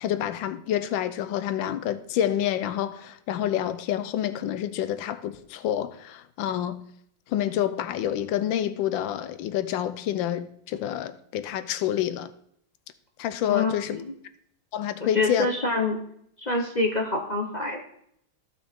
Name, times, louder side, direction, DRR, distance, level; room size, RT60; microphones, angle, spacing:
voice 1, 0.0-6.8 7.3-12.3 13.2-14.0 14.7-15.5, left 11 dB, 85° left, 1.4 m, -28 dB
voice 2, 13.5-14.1 15.0-16.0 16.4-17.8, left 3 dB, 40° left, 0.6 m, -26 dB
14.0 x 6.3 x 3.6 m
omnidirectional pair, 2.0 m